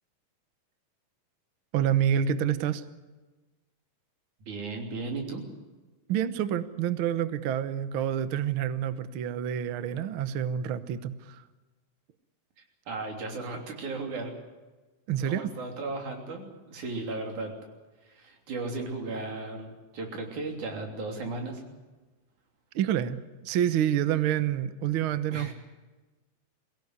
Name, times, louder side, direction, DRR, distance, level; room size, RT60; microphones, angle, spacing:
voice 1, 1.7-2.8 6.1-11.4 15.1-15.5 22.7-25.5, right 10 dB, 85° right, 12 dB, 1.1 m, -28 dB
voice 2, 4.5-5.4 12.6-14.3 15.2-17.5 18.0-21.6 25.3-25.5, right 3 dB, 60° right, 2 dB, 4.6 m, -36 dB
23.5 x 17.0 x 9.7 m, 1.2 s
omnidirectional pair, 3.9 m